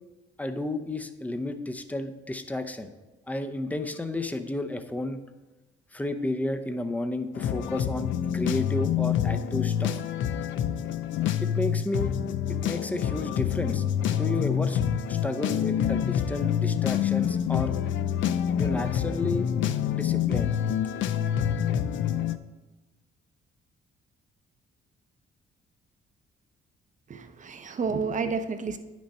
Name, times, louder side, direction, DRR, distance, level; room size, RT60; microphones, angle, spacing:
voice 1, 0.4-2.9 3.3-5.2 5.9-10.0 11.4-12.1 12.6-13.8 14.1-14.8 15.1-17.7 18.6-19.5 19.9-20.6, left 2 dB, 5° left, 7 dB, 0.7 m, -32 dB
sound 1, 7.3-22.4, left 9 dB, 75° left, 0.5 m, -27 dB
voice 2, 27.1-28.8, right 5 dB, 40° right, 8 dB, 0.8 m, -30 dB
9.9 x 6.1 x 4.2 m, 1.1 s
cardioid pair, 90°, 20 cm